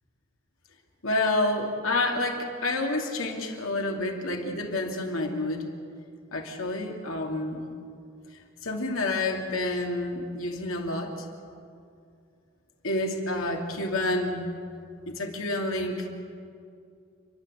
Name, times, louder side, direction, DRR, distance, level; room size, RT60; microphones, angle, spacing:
voice 1, 1.0-5.6 6.3-7.6 8.6-11.1 12.8-14.4 15.1-16.1, left 2 dB, 75° left, 1 dB, 2.7 m, -29 dB
29.0 x 12.0 x 7.9 m, 2.4 s
head